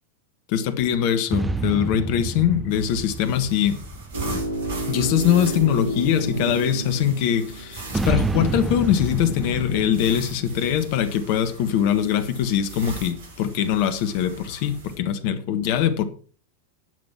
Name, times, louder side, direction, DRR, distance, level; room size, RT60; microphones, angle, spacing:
voice 1, 0.5-3.8 4.9-16.1, left 9 dB, 45° left, 1.4 m, -22 dB
sound 1, 1.3-5.0 7.9-11.7, right 3 dB, 10° right, 0.8 m, -29 dB
reading braille, 2.7-15.0, right 2 dB, 55° right, 5.8 m, -40 dB
sound 2, 4.1-8.1, right 2 dB, 80° right, 1.5 m, -30 dB
11.0 x 7.7 x 5.8 m
figure-of-eight pair, 90°, 0 cm